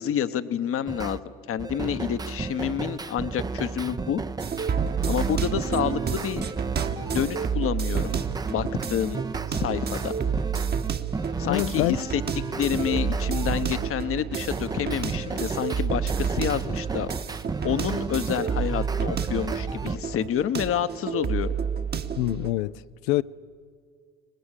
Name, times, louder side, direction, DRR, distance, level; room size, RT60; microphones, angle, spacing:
voice 1, 0.0-4.2 5.1-6.4 7.1-9.2 9.5-10.1 11.4-12.2 12.6-17.1 17.6-21.5, left 9 dB, 45° left, 1.1 m, -28 dB
sound 1, 0.9-1.2 1.6-7.6 7.9-13.9 14.3-20.0, right 4 dB, 15° right, 0.6 m, -33 dB
sound 2, 4.4-22.5, right 7 dB, 30° right, 1.2 m, -30 dB
voice 2, 11.5-12.0 22.2-23.2, left 17 dB, 70° left, 0.6 m, -26 dB
24.0 x 20.0 x 6.7 m
hypercardioid pair, 70°, 30 cm